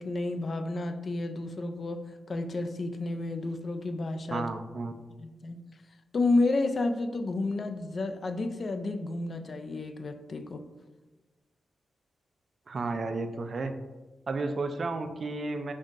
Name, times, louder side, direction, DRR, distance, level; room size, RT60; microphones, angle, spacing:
voice 1, 0.0-4.5 5.2-5.7 6.1-10.7, left 2 dB, 50° left, 0.3 m, -31 dB
voice 2, 4.3-4.9 12.7-13.7 14.3-15.7, right 3 dB, 55° right, 0.3 m, -32 dB
5.3 x 2.6 x 2.4 m
cardioid pair, 65°, 0 cm